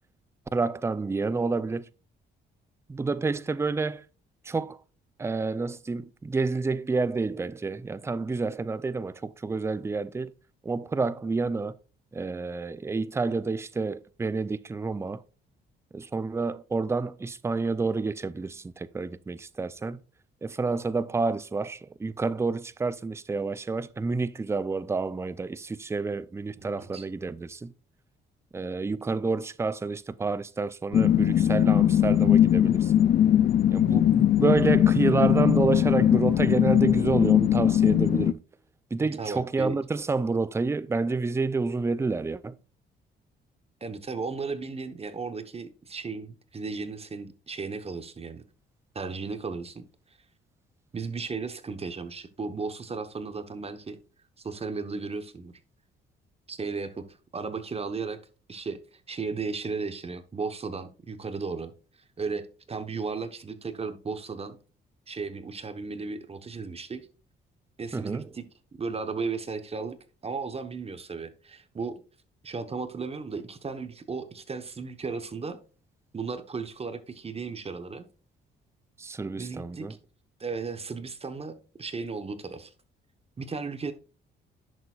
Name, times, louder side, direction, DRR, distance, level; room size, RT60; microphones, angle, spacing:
voice 1, 0.5-1.9 2.9-4.0 4.4-4.8 5.2-10.3 10.6-11.7 12.1-15.2 15.9-20.0 20.4-27.7 28.5-33.1 33.7-38.4 38.9-42.5 67.9-68.3 79.0-79.9, right 4 dB, 15° right, 0.4 m, -29 dB
voice 2, 26.6-27.0 39.0-39.7 43.8-48.4 48.9-49.8 50.9-54.0 54.4-55.6 56.5-57.1 57.3-58.2 58.5-58.8 59.1-61.7 62.2-64.6 65.1-67.1 67.8-68.4 68.8-70.0 70.2-72.0 72.4-75.6 76.1-78.0 79.4-79.9 80.4-82.7 83.4-83.9, right 4 dB, 30° right, 1.1 m, -35 dB
sound 1, 30.9-38.3, left 10 dB, 50° left, 0.4 m, -21 dB
10.5 x 6.9 x 2.4 m
cardioid pair, 90°, 20 cm